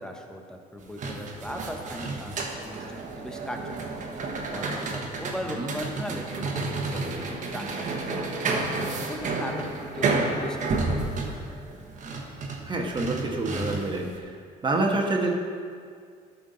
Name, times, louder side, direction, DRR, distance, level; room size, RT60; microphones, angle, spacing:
voice 1, 0.0-3.9 4.5-8.0 8.5-8.7 9.0-11.3, equal, 5° left, 2 dB, 1.0 m, -38 dB
sound 1, 0.8-14.1, right 3 dB, 50° right, 1.3 m, -31 dB
voice 2, 12.7-14.4 14.6-15.3, right 2 dB, 30° right, 0 dB, 1.2 m, -27 dB
12.5 x 5.9 x 3.9 m, 2.1 s
cardioid pair, 110°, 17 cm